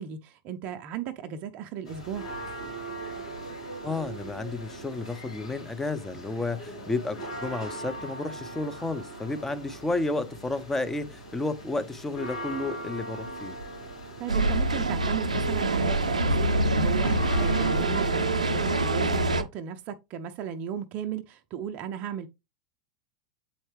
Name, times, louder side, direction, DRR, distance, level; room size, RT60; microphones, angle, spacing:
voice 1, 0.0-2.3 14.2-22.3, right 8 dB, 40° right, 0.6 m, -36 dB
sound 1, 1.9-19.4, right 2 dB, 75° left, 3.5 m, -40 dB
voice 2, 3.8-13.6, left 2 dB, 10° left, 0.8 m, -32 dB
sound 2, 14.3-19.4, right 2 dB, 85° right, 0.6 m, -25 dB
7.8 x 4.3 x 3.2 m
figure-of-eight pair, 90°, 4 cm